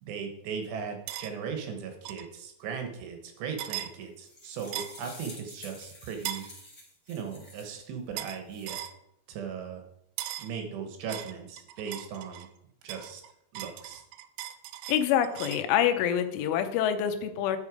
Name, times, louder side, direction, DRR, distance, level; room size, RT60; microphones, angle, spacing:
voice 1, 0.0-6.5 7.1-8.8 9.3-9.8 10.4-12.5 12.8-13.2 13.5-14.0, right 6 dB, 70° right, 4 dB, 3.1 m, -38 dB
sound 1, 1.1-1.3 2.1-2.3 3.6-3.9 4.7-5.1 6.3-6.5 8.2-8.4 8.7-9.0 10.2-10.5 11.1-12.5 12.9-15.7, right 13 dB, 90° right, 3.1 m, -38 dB
sound 2, 4.0-7.8 8.3-8.8, left 1 dB, 10° left, 3.0 m, -49 dB
voice 2, 14.9-17.6, left 9 dB, 85° left, 8 dB, 3.3 m, -26 dB
10.5 x 6.7 x 4.9 m, 0.78 s
omnidirectional pair, 5.4 m